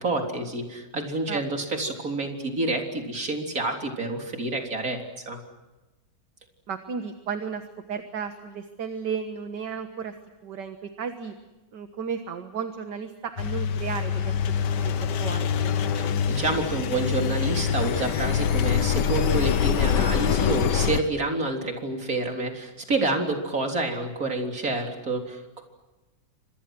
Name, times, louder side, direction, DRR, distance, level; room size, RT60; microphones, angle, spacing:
voice 1, 0.0-5.4 16.0-25.6, right 2 dB, 50° right, 3 dB, 4.1 m, -28 dB
voice 2, 6.7-7.6 7.9-10.1 10.4-11.3 11.7-14.3 14.8-15.8, right 6 dB, 70° right, 7 dB, 2.1 m, -34 dB
Engine, 13.4-21.0, left 8 dB, 70° left, 1.6 m, -25 dB
30.0 x 26.0 x 6.2 m, 1.1 s
omnidirectional pair, 2.0 m